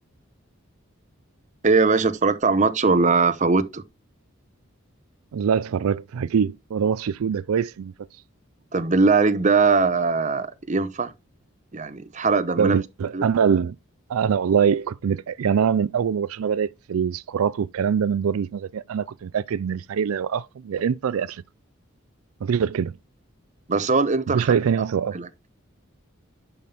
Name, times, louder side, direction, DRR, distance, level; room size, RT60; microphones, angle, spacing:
voice 1, 1.6-3.8 8.7-11.1 11.7-12.8 13.1-13.2 23.7-24.5 25.1-25.3, right 4 dB, 35° right, 0.8 m, -20 dB
voice 2, 5.3-7.9 12.6-13.8 14.1-21.4 22.4-22.9 24.3-25.2, right 7 dB, 85° right, 0.4 m, -23 dB
10.5 x 5.7 x 3.4 m
head